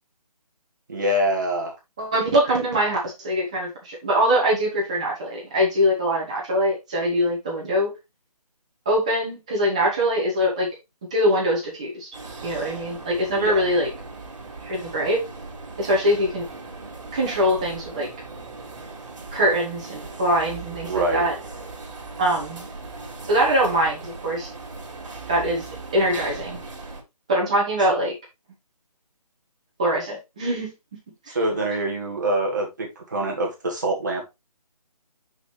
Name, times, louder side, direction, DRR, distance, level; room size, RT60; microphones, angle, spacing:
voice 1, 0.9-1.7 13.3-13.6 20.8-21.3 31.3-34.3, right 1 dB, 30° right, 1.8 m, -25 dB
voice 2, 2.0-3.0 3.2-7.9 8.8-10.7 11.1-12.1 12.4-13.9 14.6-15.2 15.8-16.5 17.1-18.1 19.3-21.3 22.2-22.6 23.3-24.5 25.3-25.7 25.9-26.6 27.3-28.1 29.8-30.7 31.3-31.4, equal, 10° right, 1.2 m, -23 dB
sound 1, 12.1-27.0, right 3 dB, 50° right, 2.7 m, -38 dB
6.3 x 6.2 x 3.2 m
hypercardioid pair, 180°, 20 cm